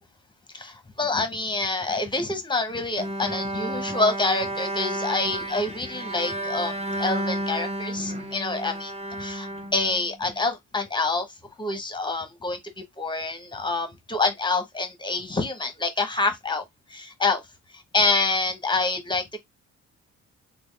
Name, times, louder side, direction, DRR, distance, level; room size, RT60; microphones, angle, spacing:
voice 1, 0.5-8.9 9.2-11.3 11.6-16.6 16.9-17.4 17.7-19.4, left 3 dB, 15° left, 0.9 m, -27 dB
Bowed string instrument, 3.0-10.4, right 1 dB, 20° right, 0.8 m, -31 dB
3.5 x 2.3 x 3.3 m
cardioid pair, 90°, 30 cm